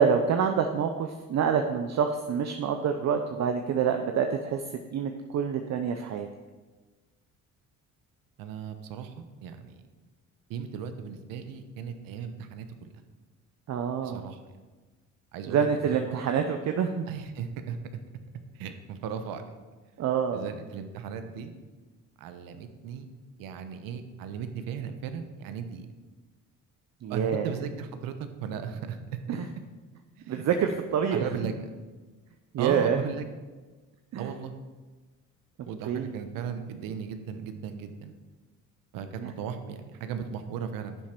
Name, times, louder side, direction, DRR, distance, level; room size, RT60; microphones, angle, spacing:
voice 1, 0.0-4.6 4.9-6.3 13.7-14.2 15.5-17.1 20.0-20.5 27.0-27.5 29.3-29.5 30.3-31.3 32.5-33.0 34.1-34.3 35.9-36.3 39.2-39.3, right 7 dB, 55° right, 6 dB, 0.7 m, -27 dB
voice 2, 8.4-9.1 9.4-9.8 10.5-12.9 14.0-14.4 15.3-16.0 17.1-17.8 18.5-19.4 20.3-21.5 22.2-23.1 23.4-25.9 27.1-28.1 28.4-29.0 29.3-29.4 30.2-30.7 31.1-31.5 32.6-33.2 34.2-34.5 35.7-38.1 38.9-41.0, right 7 dB, 85° right, 8 dB, 1.0 m, -36 dB
10.5 x 7.3 x 4.5 m, 1.3 s
cardioid pair, 85°, 33 cm